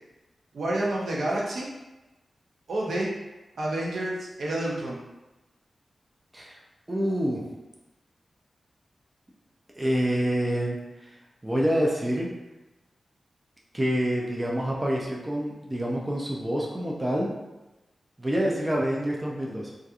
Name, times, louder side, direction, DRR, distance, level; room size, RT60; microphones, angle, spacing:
voice 1, 0.5-1.7 2.7-3.1 3.6-5.0, right 1 dB, 75° right, -4 dB, 0.6 m, -29 dB
voice 2, 6.9-7.5 9.8-11.1 11.4-12.3 13.7-17.3 18.2-19.7, equal, 15° right, -3 dB, 0.3 m, -27 dB
2.7 x 2.3 x 2.3 m, 1.0 s
wide cardioid pair, 140°, 0 cm